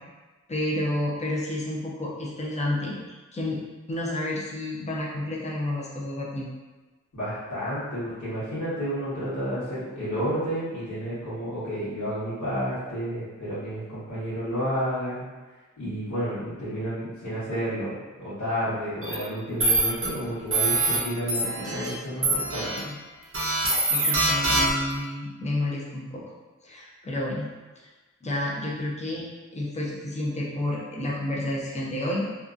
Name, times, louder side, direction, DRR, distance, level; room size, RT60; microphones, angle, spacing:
voice 1, 0.5-3.6 3.9-6.5 22.8-23.0 23.9-26.2 26.6-27.5 27.8-27.9 28.2-29.2 29.5-32.3, left 1 dB, 25° left, -4 dB, 0.6 m, -30 dB
voice 2, 7.1-15.2 15.8-22.7, equal, 70° left, -12 dB, 1.2 m, -31 dB
sound 1, 19.0-19.2 19.6-20.1 20.5-21.0 21.3-21.9 22.2-22.8 23.3-24.9, right 2 dB, 45° right, 0.7 m, -24 dB
2.8 x 2.3 x 2.4 m, 1.2 s
wide cardioid pair, 85°, 30 cm